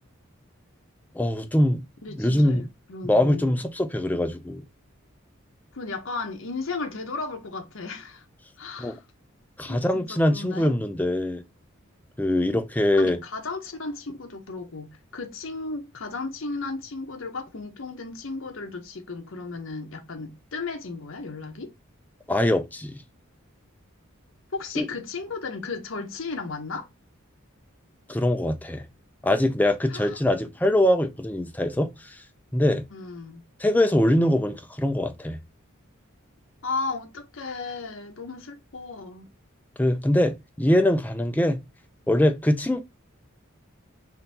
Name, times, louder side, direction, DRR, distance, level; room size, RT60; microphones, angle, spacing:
voice 1, 1.1-1.8 2.1-2.7 3.0-4.6 8.8-9.0 9.6-11.4 12.2-13.2 22.3-23.0 24.8-24.9 28.1-28.9 29.2-32.2 32.5-32.8 33.6-35.4 39.8-41.6 42.1-42.8, left 1 dB, 10° left, 0.4 m, -23 dB
voice 2, 2.0-3.6 5.7-8.2 8.6-9.0 9.6-10.7 12.9-21.7 24.5-26.9 29.9-30.2 32.9-33.4 36.6-39.3, left 3 dB, 70° left, 0.9 m, -35 dB
3.8 x 2.7 x 4.0 m
head